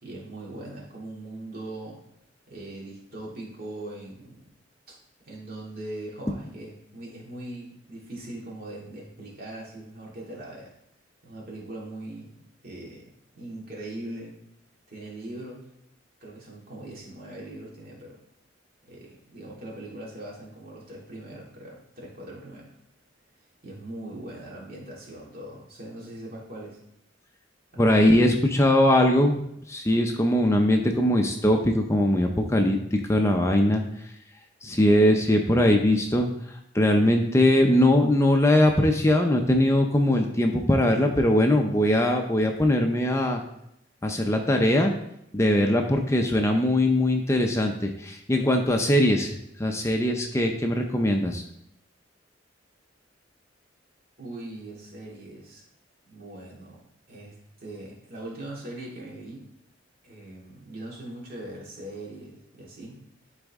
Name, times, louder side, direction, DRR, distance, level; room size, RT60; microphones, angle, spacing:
voice 1, 0.0-2.0 2.5-4.5 4.9-5.0 5.2-10.7 11.2-14.3 14.9-15.6 16.2-18.2 18.8-22.8 23.6-26.8 27.7-28.2 54.2-55.6 56.0-56.8 57.1-57.3 57.6-59.5 60.0-63.0, right 1 dB, 50° right, -4 dB, 2.6 m, -40 dB
voice 2, 27.8-29.4 29.7-33.8 34.6-36.3 36.7-43.4 44.0-44.9 45.3-51.4, left 1 dB, 15° left, 3 dB, 0.6 m, -21 dB
11.5 x 4.1 x 3.6 m, 0.79 s
head